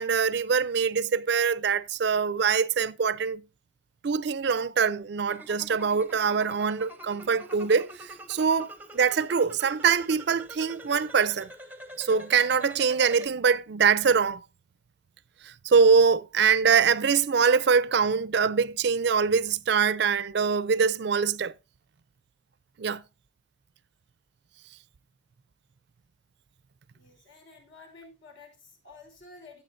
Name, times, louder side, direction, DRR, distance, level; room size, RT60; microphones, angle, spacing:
voice 1, 0.0-3.4 4.0-11.5 12.0-14.4 15.4-21.5 22.8-23.0, right 6 dB, 55° right, 0.4 m, -24 dB
sound 1, 5.3-13.3, right 1 dB, 10° right, 0.7 m, -46 dB
voice 2, 26.9-29.6, left 3 dB, 65° left, 3.5 m, -51 dB
16.5 x 7.4 x 2.6 m
head